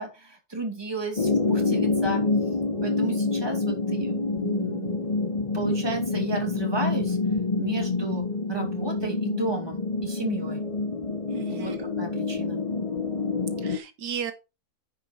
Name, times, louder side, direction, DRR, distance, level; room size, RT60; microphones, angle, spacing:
voice 1, 0.0-2.2 2.8-5.1 5.5-7.2 7.6-10.7 11.5-12.6, right 2 dB, 15° right, 2.6 m, -33 dB
sound 1, 1.2-13.8, left 3 dB, 30° left, 0.7 m, -27 dB
voice 2, 11.3-11.9 13.6-14.3, right 7 dB, 85° right, 1.6 m, -35 dB
9.9 x 5.2 x 4.5 m
omnidirectional pair, 1.7 m